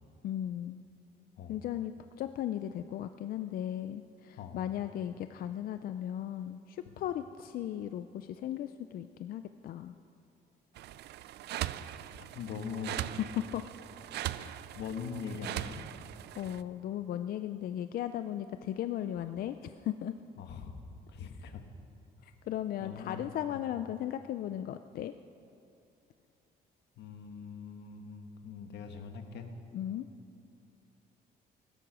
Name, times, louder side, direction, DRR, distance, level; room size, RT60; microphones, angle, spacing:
voice 1, 0.2-0.8 1.5-10.0 13.3-13.6 14.4-14.6 16.4-20.1 22.2-25.1 29.7-30.1, left 11 dB, 60° left, 10 dB, 0.4 m, -37 dB
sound 1, 10.8-16.6, right 13 dB, 75° right, 0.4 m, -40 dB
voice 2, 12.3-13.2 14.7-15.8 20.4-20.7 21.1-21.6 22.8-23.2 23.5-23.6 27.0-29.5, left 6 dB, 85° left, 6 dB, 1.4 m, -42 dB
16.5 x 13.0 x 6.1 m, 2.7 s
cardioid pair, 170°, 17 cm